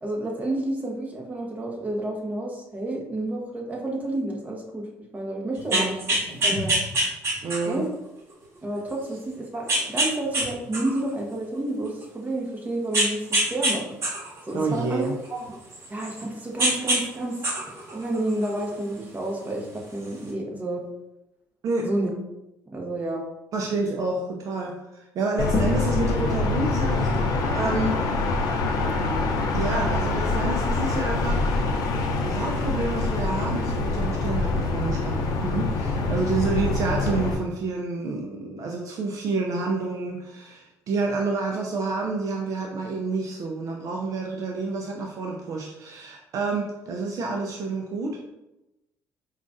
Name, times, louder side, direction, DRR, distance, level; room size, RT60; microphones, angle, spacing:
voice 1, 0.0-4.8 5.1-5.9 6.4-6.7 7.7-7.9 8.6-13.9 14.4-15.5 15.9-17.4 17.9-20.8 21.8-22.1 22.7-23.2 36.2-36.4, right 1 dB, 25° right, 0 dB, 1.0 m, -30 dB
sound 1, 5.6-7.8 8.4-8.5 9.7-10.5 10.7-12.0 12.9-13.7 14.0-16.2 16.6-17.0 17.3-18.7 19.8-19.9, right 1 dB, 40° right, 1.4 m, -24 dB
voice 2, 7.4-7.8 14.5-15.1 21.6-21.9 23.5-28.0 29.5-31.4 32.2-48.2, right 3 dB, 55° right, 1 dB, 0.5 m, -29 dB
sound 2, 25.4-37.3, left 3 dB, 70° left, 0.6 m, -25 dB
4.9 x 2.4 x 2.6 m, 0.94 s
supercardioid pair, 90°, 7 cm